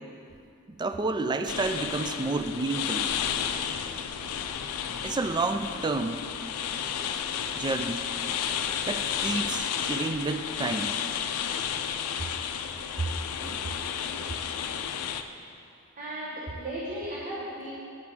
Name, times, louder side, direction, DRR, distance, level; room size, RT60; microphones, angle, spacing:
voice 1, 0.8-3.1 5.0-6.2 7.6-8.1 8.9-10.9 13.0-13.1 13.4-13.7, right 3 dB, 20° right, 8 dB, 0.3 m, -30 dB
sound 1, 1.5-15.2, left 8 dB, 85° left, 0.4 m, -32 dB
voice 2, 16.0-17.7, right 1 dB, 35° right, -7 dB, 1.4 m, -35 dB
9.8 x 9.3 x 3.6 m, 2.6 s
head